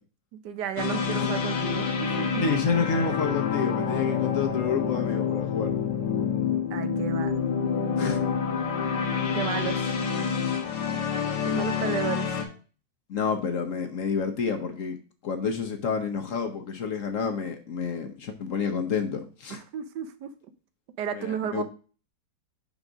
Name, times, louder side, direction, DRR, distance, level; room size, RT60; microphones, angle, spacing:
voice 1, 0.4-2.4 6.7-7.3 9.3-9.9 11.4-12.3 19.5-20.3 21.0-21.6, right 8 dB, 75° right, 10 dB, 1.3 m, -33 dB
sound 1, 0.8-12.5, left 6 dB, 85° left, 1.8 m, -27 dB
voice 2, 2.4-5.7 8.0-8.2 13.1-15.0 15.2-19.6 21.1-21.6, left 5 dB, 55° left, 5 dB, 1.1 m, -29 dB
5.3 x 4.0 x 5.9 m, 0.37 s
omnidirectional pair, 1.9 m